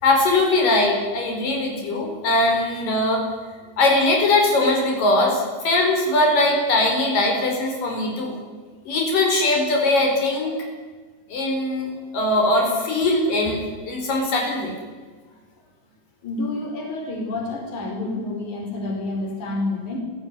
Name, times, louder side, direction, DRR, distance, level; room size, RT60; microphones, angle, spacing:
voice 1, 0.0-3.2 3.8-8.4 8.9-10.5 11.3-14.8, left 2 dB, 80° left, 2 dB, 6.3 m, -21 dB
voice 2, 16.2-20.0, left 2 dB, 60° left, 2 dB, 6.0 m, -28 dB
29.0 x 16.5 x 9.8 m, 1.5 s
omnidirectional pair, 3.8 m